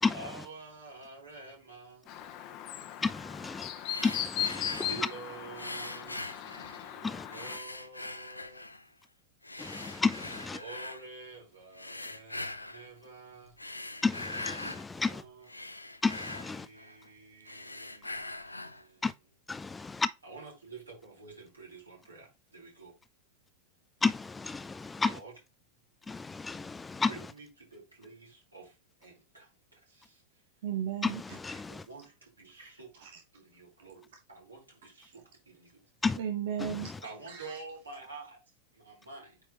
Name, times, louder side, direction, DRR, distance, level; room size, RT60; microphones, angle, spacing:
voice 1, 0.1-2.0 4.8-8.6 10.5-13.5 14.9-15.5 16.3-19.1 20.2-22.9 25.0-25.3 27.1-28.7 29.0-29.5 29.9-30.0 31.7-32.9 33.3-34.0 34.3-35.7 37.0-38.4 38.8-39.3, right 3 dB, 80° right, 4.2 m, -49 dB
Chirp tweet, 2.1-7.6, left 11 dB, 40° left, 1.0 m, -38 dB
voice 2, 3.0-3.7 4.0-4.9 7.0-7.3 9.6-10.6 14.0-15.2 16.0-16.7 19.0-19.1 19.5-20.1 24.0-25.2 26.1-27.1 31.0-31.1 31.4-31.8 36.0-36.2, left 4 dB, 10° left, 0.4 m, -31 dB
sound 1, 3.8-5.1 5.6-7.0 7.3-8.9 9.4-11.0 11.7-12.9 13.5-14.9 15.2-17.1 17.4-18.9, left 2 dB, 85° left, 0.6 m, -42 dB
voice 3, 30.6-31.4 33.0-33.2 36.2-36.9 37.3-37.6, right 9 dB, 55° right, 1.3 m, -35 dB
8.9 x 4.6 x 3.0 m
figure-of-eight pair, 90°, 0 cm